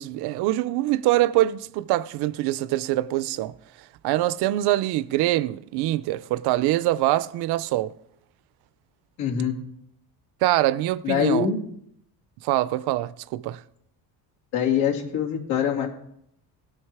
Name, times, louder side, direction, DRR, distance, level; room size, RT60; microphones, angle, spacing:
voice 1, 0.0-7.9 10.4-11.5 12.4-13.6, right 15 dB, 65° right, 0.5 m, -24 dB
voice 2, 9.2-9.6 11.0-11.6 14.5-15.9, left 8 dB, 85° left, 2.8 m, -23 dB
18.5 x 6.6 x 4.7 m
cardioid pair, 165°, 43 cm